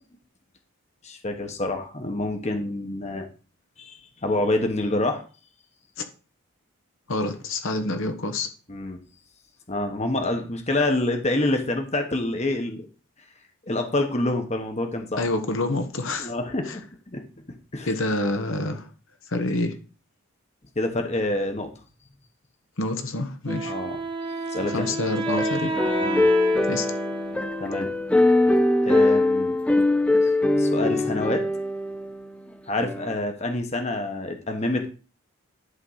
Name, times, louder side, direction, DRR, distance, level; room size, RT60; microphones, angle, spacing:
voice 1, 1.0-3.3 3.8-5.2 8.7-9.0 9.7-12.9 13.7-15.3 16.2-17.2 17.7-17.9 20.7-21.7 23.6-24.0 24.3-25.0 26.0-26.3 27.6-27.9 28.8-29.6 30.2-30.3 30.6-31.4 32.7-34.9, left 2 dB, 30° left, 1.1 m, -27 dB
voice 2, 7.1-8.5 15.2-16.3 16.7-16.8 17.9-18.9 19.3-19.7 22.8-23.7 24.7-25.8 26.7-26.9, left 2 dB, 60° left, 1.0 m, -27 dB
Wind instrument woodwind instrument, 23.5-28.3, right 1 dB, 20° right, 1.0 m, -30 dB
sound 1, 25.3-32.2 32.8-33.1, left 2 dB, 5° left, 0.5 m, -22 dB
11.5 x 3.8 x 5.6 m
head